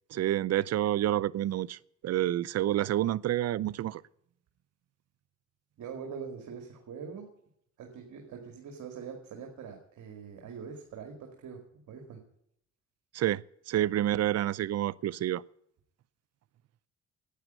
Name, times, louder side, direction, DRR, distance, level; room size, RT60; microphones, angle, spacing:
voice 1, 0.1-4.0 13.1-15.4, right 13 dB, 55° right, 0.6 m, -29 dB
voice 2, 5.8-7.2 7.8-11.6 11.9-12.2, right 6 dB, 70° right, 2.3 m, -43 dB
11.5 x 9.0 x 9.0 m
cardioid pair, 90°, 30 cm